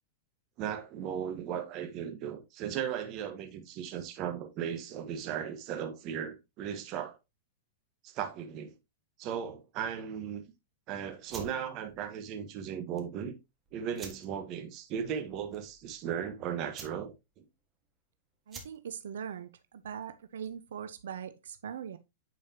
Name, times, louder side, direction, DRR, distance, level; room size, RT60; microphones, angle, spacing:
voice 1, 0.6-7.2 8.0-8.7 9.2-10.4 10.9-13.3 13.7-17.4, right 8 dB, 35° right, 1.3 m, -37 dB
sound 1, 11.2-20.7, right 4 dB, 20° right, 1.5 m, -52 dB
voice 2, 18.5-22.0, right 8 dB, 90° right, 0.6 m, -41 dB
9.2 x 4.7 x 2.8 m
supercardioid pair, 150°, 0 cm